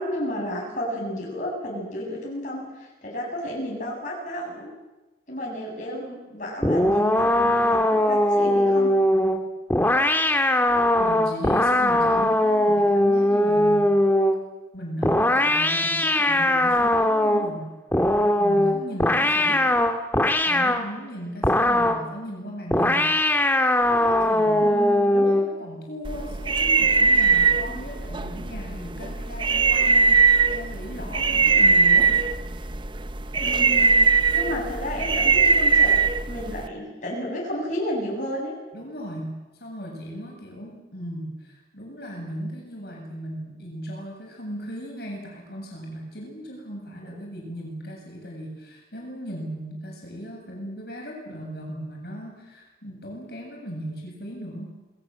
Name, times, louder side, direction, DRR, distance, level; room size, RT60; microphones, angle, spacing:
voice 1, 0.0-4.7 5.3-8.9 24.6-25.3 33.4-34.0 34.3-35.9 36.3-38.6 47.0-47.1, equal, 45° left, -2 dB, 7.5 m, -32 dB
sound 1, 6.6-14.4 15.0-17.5 17.9-20.9 21.4-22.1 22.7-25.5, left 1 dB, 10° left, 1.7 m, -20 dB
voice 2, 11.0-13.8 14.7-17.7 18.4-19.7 20.4-23.1 23.9-24.6 25.2-32.2 38.7-54.8, equal, 60° left, 0 dB, 7.8 m, -37 dB
sound 2, 26.1-36.7, right 4 dB, 25° right, 0.8 m, -20 dB
28.5 x 20.5 x 7.7 m, 1.1 s
head